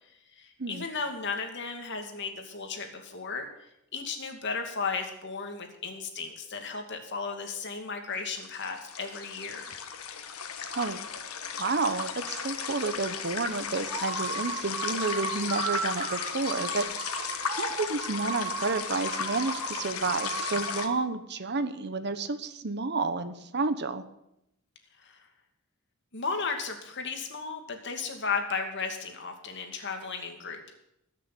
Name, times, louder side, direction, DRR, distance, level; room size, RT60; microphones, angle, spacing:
voice 1, 0.4-3.5 3.9-9.6 10.1-10.3 25.0-25.3 26.1-30.7, left 5 dB, 55° left, 4 dB, 2.4 m, -35 dB
sound 1, 8.1-20.9, left 6 dB, 85° left, 1.6 m, -35 dB
voice 2, 10.6-11.0 11.6-24.0, right 3 dB, 50° right, 11 dB, 1.1 m, -31 dB
sound 2, 13.9-21.1, right 4 dB, 20° right, 2.3 m, -36 dB
19.5 x 6.8 x 8.3 m, 0.82 s
head